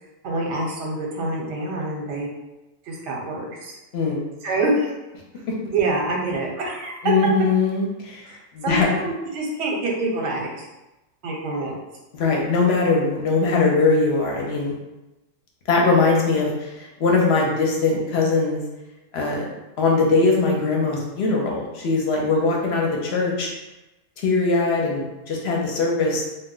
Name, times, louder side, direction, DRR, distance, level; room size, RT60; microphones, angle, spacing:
voice 1, 0.2-2.3 2.9-3.8 4.4-4.9 5.6-7.0 8.3-10.7 11.2-11.8 22.4-22.6, right 2 dB, 70° right, -2 dB, 1.0 m, -26 dB
voice 2, 7.0-8.2 8.5-8.9 12.1-14.7 15.7-18.6 19.1-19.4 19.8-23.5 24.2-26.2, left 3 dB, 65° left, -1 dB, 0.8 m, -21 dB
2.3 x 2.1 x 3.7 m, 1.0 s
omnidirectional pair, 1.3 m